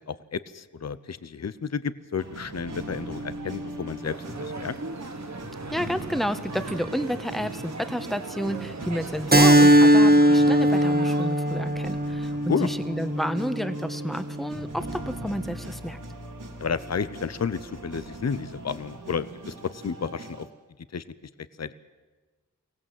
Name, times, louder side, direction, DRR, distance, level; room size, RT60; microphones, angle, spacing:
voice 1, 0.0-4.1 4.4-4.7 12.5-12.7 16.6-20.5 20.9-21.0 21.6-21.7, left 6 dB, 55° left, 15 dB, 0.8 m, -31 dB
sound 1, 2.2-20.5, right 2 dB, 75° right, 2.6 m, -40 dB
sound 2, 4.0-11.3, right 3 dB, 60° right, 1.7 m, -39 dB
voice 2, 5.7-16.0, equal, ahead, 10 dB, 1.3 m, -31 dB
Keyboard (musical), 9.3-14.4, right 1 dB, 30° right, 1.6 m, -20 dB
24.0 x 17.5 x 7.6 m, 1.3 s
wide cardioid pair, 70°, 32 cm